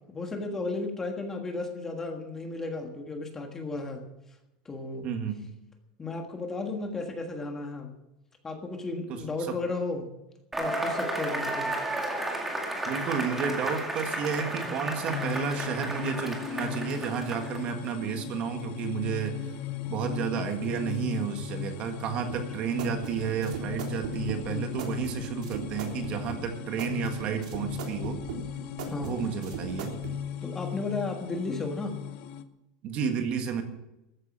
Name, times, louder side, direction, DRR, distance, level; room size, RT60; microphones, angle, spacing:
voice 1, 0.1-4.0 4.6-5.1 6.0-7.9 8.4-10.0 10.6-11.7 24.5-24.7 28.8-29.2 30.4-32.0, left 3 dB, 10° left, 4 dB, 1.5 m, -34 dB
voice 2, 5.0-5.4 9.1-9.6 12.8-19.6 19.9-28.2 29.0-30.0 32.8-33.6, right 7 dB, 30° right, 6 dB, 1.7 m, -31 dB
Cheering / Applause / Crowd, 10.5-17.8, right 1 dB, 5° right, 2.1 m, -33 dB
sound 1, 15.1-32.4, left 8 dB, 40° left, 0.9 m, -38 dB
sound 2, 22.3-30.2, right 6 dB, 85° right, 3.6 m, -39 dB
14.0 x 9.7 x 7.4 m, 0.92 s
supercardioid pair, 175°, 4 cm